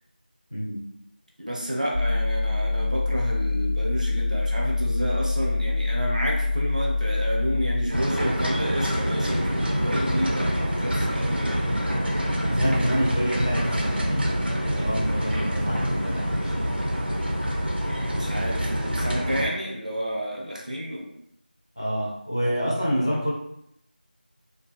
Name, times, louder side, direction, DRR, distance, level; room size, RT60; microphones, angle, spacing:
voice 1, 0.5-0.8 12.4-16.7 21.8-23.3, equal, 30° left, -4 dB, 0.4 m, -28 dB
voice 2, 1.4-11.6 17.8-21.1, equal, 50° right, -2 dB, 0.6 m, -30 dB
sound 1, 1.9-7.9, left 3 dB, 90° left, 0.4 m, -25 dB
sound 2, 7.9-19.5, equal, 90° right, 0.7 m, -26 dB
2.4 x 2.2 x 2.4 m, 0.72 s
figure-of-eight pair, 180°, 5 cm